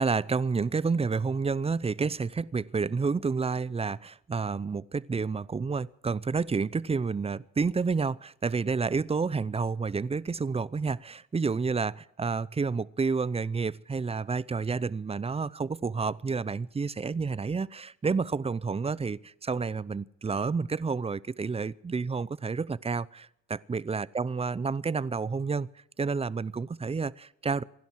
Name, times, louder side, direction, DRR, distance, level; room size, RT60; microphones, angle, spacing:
voice 1, 0.0-25.7 26.0-27.6, right 4 dB, 20° right, 0.5 m, -30 dB
27.0 x 11.5 x 4.6 m
cardioid pair, 90°, 30 cm